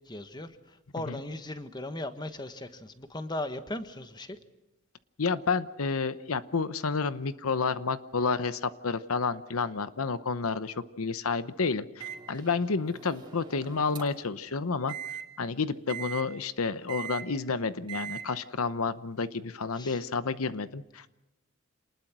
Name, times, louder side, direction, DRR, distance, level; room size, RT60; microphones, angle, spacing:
voice 1, 0.1-0.5 0.9-4.4 19.7-20.0, left 1 dB, 20° left, 9 dB, 1.3 m, -37 dB
voice 2, 5.2-14.9 15.4-21.1, left 4 dB, 85° left, 13 dB, 0.9 m, -30 dB
Microwave oven, 12.0-14.3 14.9-15.2 15.9-16.2 16.9-17.2 17.9-18.2, right 9 dB, 20° right, 2.8 m, -40 dB
27.0 x 20.0 x 6.2 m, 0.98 s
head